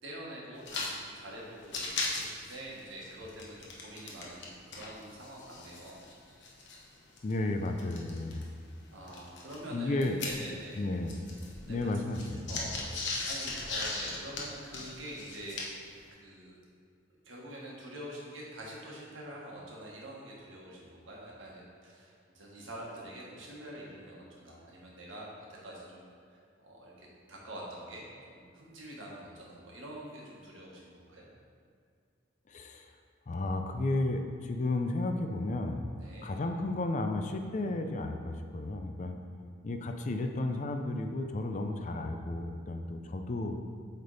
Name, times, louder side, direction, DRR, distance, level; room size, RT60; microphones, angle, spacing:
voice 1, 0.0-6.0 8.9-10.8 11.6-12.1 12.5-15.6 16.1-16.6 17.2-31.3 36.0-36.3, right 1 dB, 80° right, -4 dB, 1.4 m, -46 dB
sound 1, 0.6-0.9 1.2-1.3 1.6-4.5 4.7-8.4 9.1-10.8 11.0-15.9, left 3 dB, 60° left, 0.9 m, -38 dB
voice 2, 7.2-8.5 9.7-10.2 10.8-11.1 11.7-12.7 32.5-32.9 33.3-35.9 36.2-39.2 39.6-43.6, left 2 dB, 35° left, 5 dB, 0.4 m, -33 dB
8.1 x 3.4 x 4.0 m, 2.2 s
head